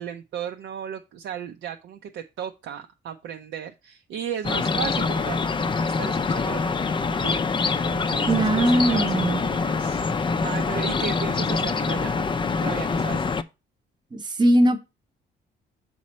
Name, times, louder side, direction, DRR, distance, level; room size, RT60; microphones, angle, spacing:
voice 1, 0.0-5.4 5.8-6.6 7.2-7.4 7.8-12.2 12.6-13.3, right 8 dB, 75° right, 0.6 m, -35 dB
sound 1, 4.4-13.4, left 4 dB, 25° left, 0.4 m, -25 dB
voice 2, 8.3-9.4 14.1-14.8, right 1 dB, 20° right, 0.8 m, -20 dB
6.3 x 4.3 x 4.1 m
cardioid pair, 90°, 20 cm